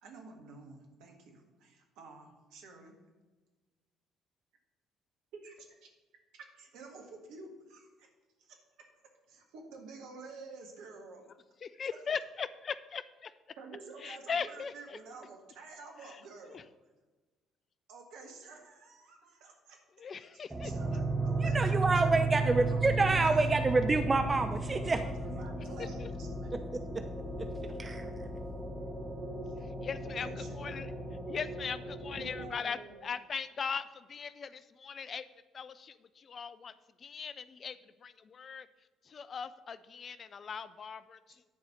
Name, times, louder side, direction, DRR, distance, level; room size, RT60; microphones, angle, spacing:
voice 1, 0.0-2.9 5.3-5.7 6.3-8.1 8.4-8.9 9.3-11.2 13.6-16.6 17.9-19.8 20.2-20.3 20.6-23.5 23.9-24.3 24.7-26.5 29.4-29.5 30.2-30.9 32.1-33.1, right 4 dB, 65° right, 2 dB, 1.7 m, -50 dB
voice 2, 11.6-13.3 14.0-15.0 16.0-16.2 16.5-16.6 20.0-20.7 25.8-26.1 29.6-30.9 31.3-35.3 35.5-36.7 37.0-38.7 39.0-41.5, left 6 dB, 40° left, 14 dB, 0.4 m, -40 dB
sound 1, 20.5-32.5, right 2 dB, 10° right, 1.7 m, -35 dB
voice 3, 21.4-25.0 26.7-27.0 27.4-28.1, right 3 dB, 25° right, 8 dB, 0.6 m, -28 dB
10.5 x 4.8 x 6.5 m, 1.3 s
figure-of-eight pair, 50°, 0 cm